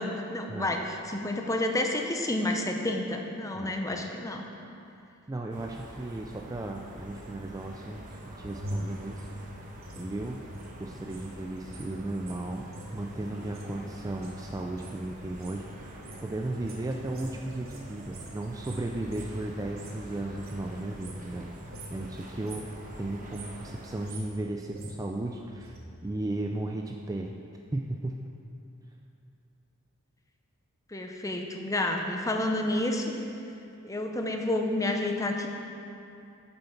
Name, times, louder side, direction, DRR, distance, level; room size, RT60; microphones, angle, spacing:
voice 1, 0.0-4.4 30.9-33.1 33.8-35.5, left 1 dB, 15° left, 3 dB, 0.6 m, -30 dB
voice 2, 3.5-4.1 5.3-9.3 9.6-10.5 10.8-21.5 21.9-22.7 23.0-25.8 26.0-27.3 27.7-28.2, right 2 dB, 15° right, 1 dB, 0.3 m, -35 dB
sound 1, 5.5-24.1, right 1 dB, 35° right, 1.0 m, -46 dB
sound 2, 7.9-11.3 11.6-20.1 20.3-21.4 21.7-22.0 22.3-22.8 23.1-25.8 26.1-26.2, equal, 65° right, 1.5 m, -43 dB
9.0 x 6.9 x 5.7 m, 2.7 s
head